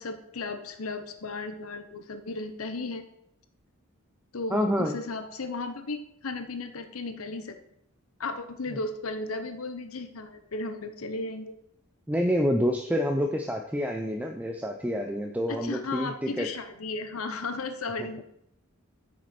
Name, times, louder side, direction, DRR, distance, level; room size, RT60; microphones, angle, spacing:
voice 1, 0.0-3.0 4.3-7.6 8.2-11.5 15.5-18.2, left 3 dB, 85° left, 9 dB, 0.9 m, -35 dB
voice 2, 4.5-5.0 8.7-8.8 12.1-16.5, equal, 5° right, 3 dB, 0.6 m, -27 dB
9.3 x 6.3 x 4.4 m, 0.77 s
head